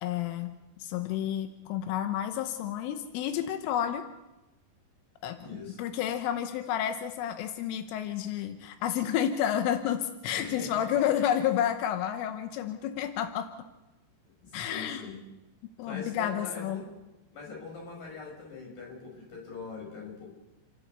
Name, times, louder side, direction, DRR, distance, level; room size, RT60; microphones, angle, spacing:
voice 1, 0.0-4.0 5.2-5.4 5.8-13.5 14.5-15.0 15.8-16.8, left 10 dB, 90° left, 7 dB, 3.6 m, -30 dB
voice 2, 5.4-5.9 10.3-11.1 14.4-15.2 15.8-16.9 17.3-20.3, left 4 dB, 45° left, 0 dB, 7.5 m, -42 dB
30.0 x 12.0 x 8.1 m, 1.0 s
omnidirectional pair, 5.6 m